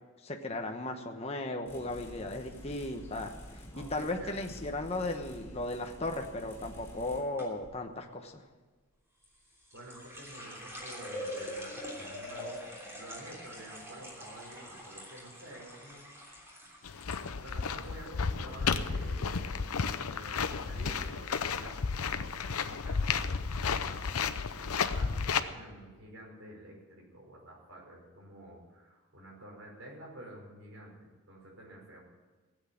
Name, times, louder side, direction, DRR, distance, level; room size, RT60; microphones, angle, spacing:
voice 1, 0.2-8.4, left 2 dB, 30° left, 3 dB, 1.0 m, -36 dB
sound 1, 1.7-7.2, left 1 dB, 10° left, 4.5 m, -49 dB
voice 2, 3.7-4.3 9.7-16.0 16.3-16.4 17.3-19.7 20.0-32.0, right 1 dB, 60° right, -2 dB, 5.2 m, -50 dB
sound 2, 7.4-7.8 9.2-17.2 17.5-18.1 18.4-18.7 19.4-19.5 19.8-19.9, equal, 10° right, 3.1 m, -44 dB
sound 3, 16.8-25.4, left 5 dB, 85° left, 0.7 m, -32 dB
15.5 x 8.1 x 8.8 m, 1.3 s
head